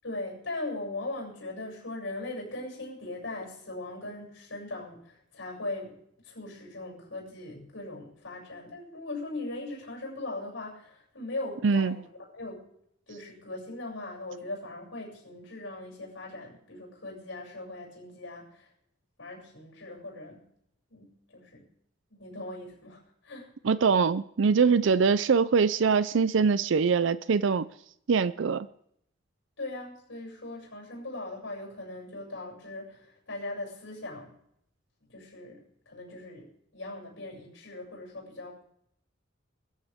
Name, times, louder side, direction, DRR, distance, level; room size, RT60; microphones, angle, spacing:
voice 1, 0.0-6.0 6.2-12.7 13.1-18.7 19.2-20.4 20.9-21.7 22.2-23.5 24.8-24.9 29.6-34.3 35.1-36.5 36.7-38.6, left 2 dB, 85° left, 7.1 m, -39 dB
voice 2, 11.6-11.9 23.6-27.7 28.1-28.7, right 5 dB, 75° right, 0.5 m, -23 dB
21.5 x 15.0 x 3.6 m
head